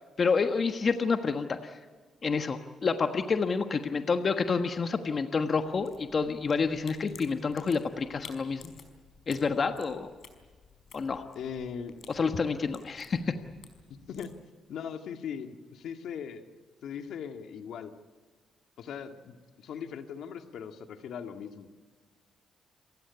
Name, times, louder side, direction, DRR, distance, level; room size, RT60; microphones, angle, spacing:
voice 1, 0.2-1.8 2.2-8.8 9.3-10.1 10.9-11.2 12.1-13.3, left 5 dB, 40° left, 7 dB, 1.4 m, -28 dB
sound 1, 5.6-14.4, left 6 dB, 55° left, 4.9 m, -54 dB
voice 2, 11.4-11.9 13.9-14.3 14.7-16.4 16.8-17.9 18.8-21.7, left 7 dB, 75° left, 6 dB, 2.0 m, -39 dB
29.0 x 16.0 x 9.5 m, 1.4 s
cardioid pair, 90°, 0 cm